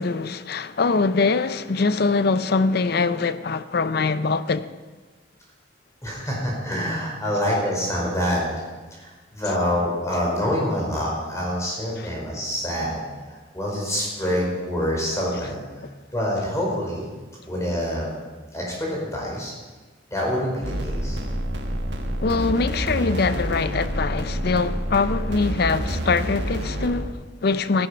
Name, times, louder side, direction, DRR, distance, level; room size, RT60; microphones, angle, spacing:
voice 1, 0.0-4.7 12.0-12.1 22.2-27.9, left 4 dB, 60° left, 0.6 m, -23 dB
voice 2, 6.0-8.6 8.9-13.0 13.3-15.6 16.1-17.1 17.5-18.1 18.5-19.5 20.1-21.2, equal, 15° left, 4.8 m, -26 dB
sound 1, 20.6-27.1, right 1 dB, 70° right, 1.5 m, -28 dB
14.0 x 11.0 x 5.7 m
head